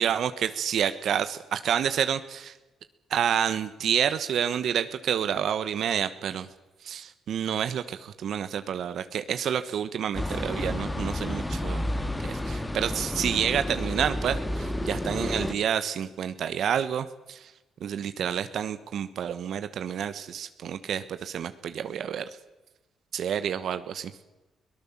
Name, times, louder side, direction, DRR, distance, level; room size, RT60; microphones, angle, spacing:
voice 1, 0.0-2.5 3.1-6.5 6.8-11.8 12.3-17.5 17.8-22.3 23.1-24.1, right 8 dB, 65° right, 11 dB, 1.2 m, -29 dB
sound 1, 10.1-15.5, left 1 dB, 15° left, 1.7 m, -31 dB
22.5 x 18.5 x 7.3 m, 1.1 s
cardioid pair, 90°, 0 cm